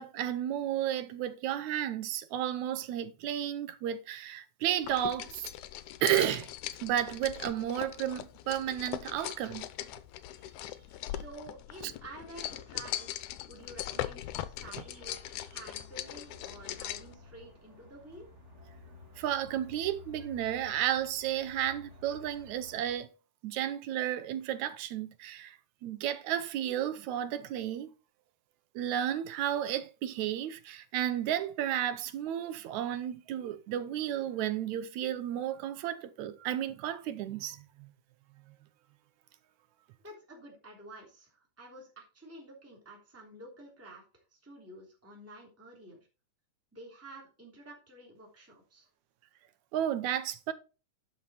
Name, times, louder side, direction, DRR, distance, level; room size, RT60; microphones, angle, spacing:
voice 1, 0.0-5.5 6.0-6.5 6.8-9.7 11.8-11.9 19.2-23.1 23.4-25.6 25.8-27.9 28.8-37.9 49.7-50.5, right 11 dB, 75° right, 2.0 m, -32 dB
sound 1, 4.8-17.1, left 12 dB, 80° left, 2.1 m, -40 dB
voice 2, 11.0-18.3 40.0-44.0 44.3-46.0 46.7-48.9, right 1 dB, 5° right, 2.9 m, -50 dB
sound 2, 14.7-22.9, left 3 dB, 20° right, 3.0 m, -53 dB
11.5 x 6.2 x 4.2 m
omnidirectional pair, 3.7 m